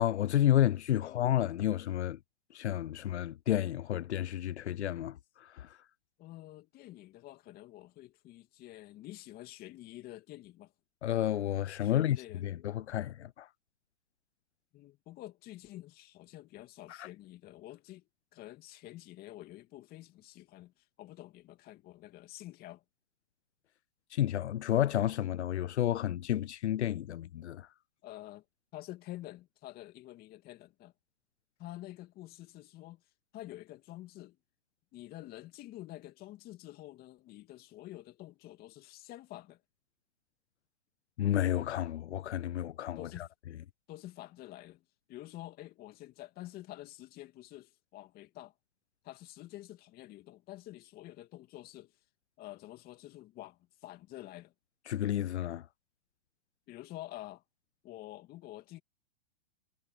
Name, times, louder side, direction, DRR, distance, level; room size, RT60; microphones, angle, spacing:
voice 1, 0.0-2.2 2.5-5.8 11.0-13.5 16.9-17.1 24.1-27.7 41.2-43.3 54.9-55.7, left 12 dB, 85° left, 0.6 m, -31 dB
voice 2, 6.2-10.7 11.8-12.4 14.7-18.1 18.3-22.8 28.0-28.4 28.7-30.9 31.6-33.0 33.3-34.4 34.9-39.6 43.0-43.3 43.9-48.5 49.0-51.9 52.4-54.5 56.7-57.4 57.8-58.8, left 15 dB, 30° left, 2.4 m, -48 dB
hypercardioid pair, 135°, 33 cm